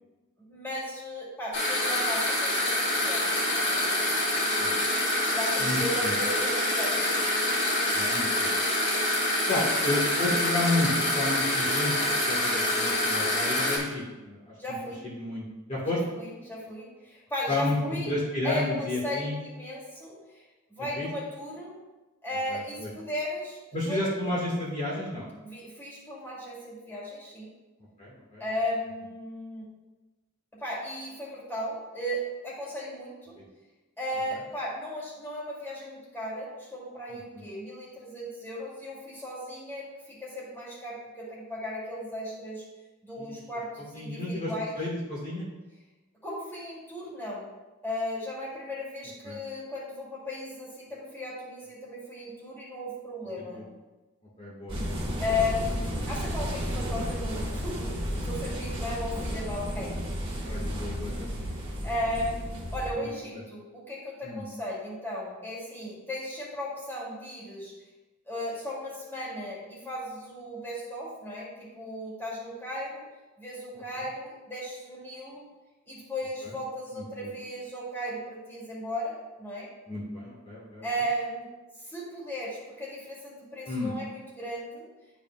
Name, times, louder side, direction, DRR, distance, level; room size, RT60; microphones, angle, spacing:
voice 1, 0.4-4.3 5.3-7.1 14.6-15.0 15.9-18.1 18.4-20.4 20.7-21.7 22.2-23.6 23.9-24.0 25.4-27.5 28.4-29.7 30.5-33.4 34.0-42.6 43.0-44.7 46.2-47.5 47.8-53.6 55.2-58.0 58.3-60.0 60.4-60.7 61.8-67.7 68.3-73.0 73.4-75.5 75.9-79.7 80.8-81.5 81.8-84.9, left 1 dB, 10° left, -6 dB, 2.2 m, -36 dB
sound 1, 1.5-13.8, left 1 dB, 55° left, 2.0 m, -26 dB
voice 2, 5.6-6.1 7.9-8.5 9.5-14.5 15.0-16.0 17.5-17.8 18.0-19.4 21.0-21.1 22.5-22.9 23.7-25.3 28.0-28.4 33.4-33.5 37.1-37.5 43.2-43.4 43.9-44.5 44.8-45.5 49.2-49.4 53.5-53.6 54.4-55.0 58.8-59.0 60.4-61.4 62.9-63.4 64.2-64.4 76.4-76.5 76.9-77.3 79.9-80.8 83.7-83.9, left 1 dB, 30° left, -7 dB, 1.4 m, -32 dB
sound 2, 54.7-62.9, equal, 25° right, 1.3 m, -32 dB
11.0 x 4.9 x 2.2 m, 1.1 s
head